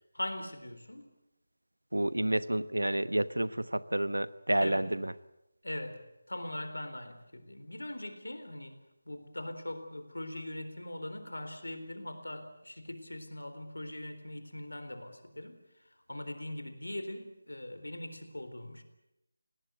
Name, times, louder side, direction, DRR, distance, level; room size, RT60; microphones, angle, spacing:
voice 1, 0.1-1.1 4.6-4.8 5.6-8.8 9.1-15.6 16.1-18.8, left 1 dB, 85° left, 9 dB, 3.9 m, -41 dB
voice 2, 1.9-5.1, right 1 dB, 90° right, 16 dB, 1.1 m, -30 dB
20.5 x 18.0 x 9.4 m, 0.90 s
figure-of-eight pair, 165°, 0 cm